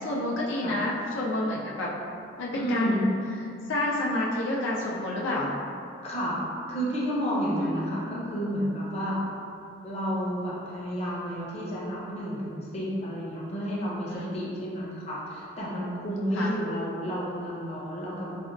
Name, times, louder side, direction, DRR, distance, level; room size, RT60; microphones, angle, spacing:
voice 1, 0.0-1.9 2.4-3.1 3.7-5.5 7.6-7.7 8.0-8.3 14.1-14.6 16.3-16.6, left 1 dB, 90° left, -4 dB, 0.5 m, -29 dB
voice 2, 2.5-3.0 6.0-6.4 6.7-9.2 9.8-18.3, equal, 35° left, -6 dB, 0.6 m, -31 dB
4.2 x 2.1 x 2.5 m, 2.5 s
head